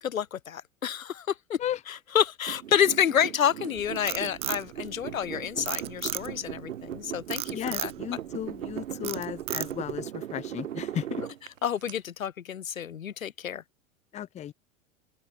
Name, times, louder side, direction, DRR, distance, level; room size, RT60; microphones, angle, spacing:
voice 1, 0.0-1.6 1.9-7.9 11.6-13.6, left 9 dB, 75° left, 1.0 m, -29 dB
sound 1, 2.5-11.9, right 11 dB, 70° right, 1.7 m, -38 dB
Frog, 3.8-5.3 5.7-6.5 7.3-8.0 8.4-8.7 9.0-10.0, right 14 dB, 15° right, 0.4 m, -34 dB
voice 2, 7.5-11.2 14.1-14.5, left 11 dB, 15° left, 0.7 m, -35 dB
open air
figure-of-eight pair, 90°, 41 cm